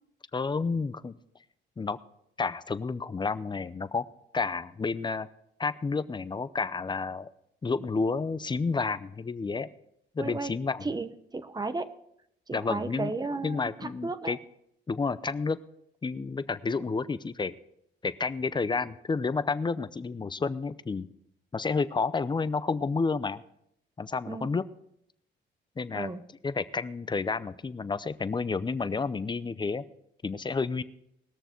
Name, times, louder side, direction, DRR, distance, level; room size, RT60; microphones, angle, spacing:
voice 1, 0.3-1.2 1.8-2.0 2.4-4.0 4.3-5.3 5.6-7.3 7.6-9.7 10.1-10.9 12.5-13.1 13.4-14.4 14.9-15.6 16.0-17.5 18.0-21.1 21.5-23.4 24.0-24.6 25.8-26.1 26.4-29.8 30.2-30.8, left 4 dB, 25° left, 14 dB, 0.6 m, -30 dB
voice 2, 10.2-10.5 10.8-11.9 12.5-14.4 24.3-24.5 25.9-26.2, right 3 dB, 20° right, 12 dB, 0.9 m, -34 dB
20.0 x 6.8 x 4.5 m, 0.77 s
cardioid pair, 90°, 20 cm